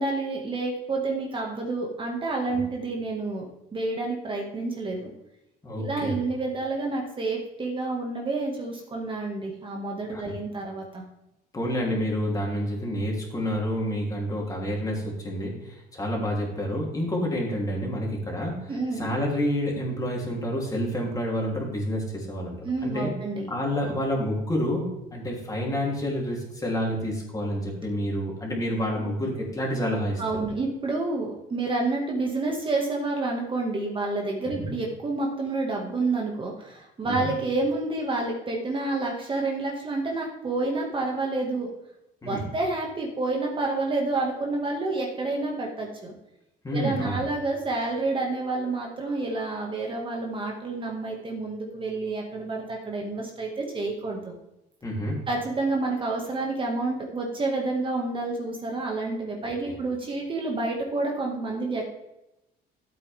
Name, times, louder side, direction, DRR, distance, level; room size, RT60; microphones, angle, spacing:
voice 1, 0.0-3.5 3.7-5.1 5.8-11.0 18.7-19.1 22.6-23.5 30.2-41.7 42.2-46.1 46.7-54.3 55.3-61.9, right 3 dB, 30° right, 0 dB, 1.9 m, -29 dB
voice 2, 5.6-6.2 10.1-10.3 11.5-22.6 22.8-23.1 23.5-30.2 34.4-34.7 37.1-37.3 42.2-42.4 46.6-47.2 54.8-55.2 59.4-59.7, equal, 20° left, -2 dB, 3.3 m, -29 dB
13.0 x 8.4 x 3.6 m, 0.90 s
cardioid pair, 110°, 17 cm